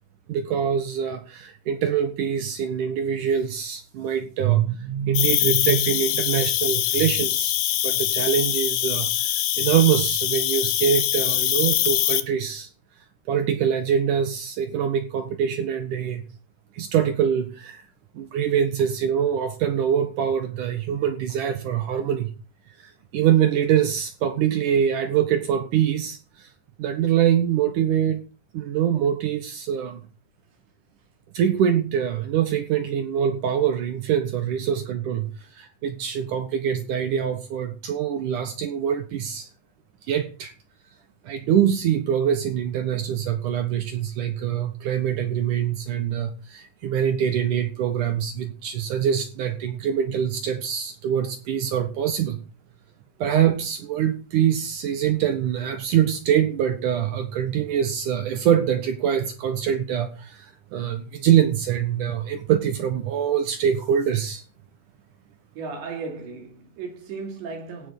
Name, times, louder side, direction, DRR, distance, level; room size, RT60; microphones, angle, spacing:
voice 1, 0.3-7.6 7.8-9.1 9.6-12.7 13.3-16.2 16.8-17.8 18.1-22.3 23.1-26.2 26.8-28.2 28.5-30.0 31.3-35.3 35.6-39.5 40.1-40.5 41.3-52.4 53.2-60.5 60.7-64.4, right 9 dB, 65° right, 2.2 m, -24 dB
Cricket, 5.1-12.2, left 13 dB, 75° left, 1.9 m, -23 dB
voice 2, 65.6-67.9, right 4 dB, 90° right, 5.2 m, -35 dB
16.5 x 6.1 x 6.4 m
omnidirectional pair, 4.9 m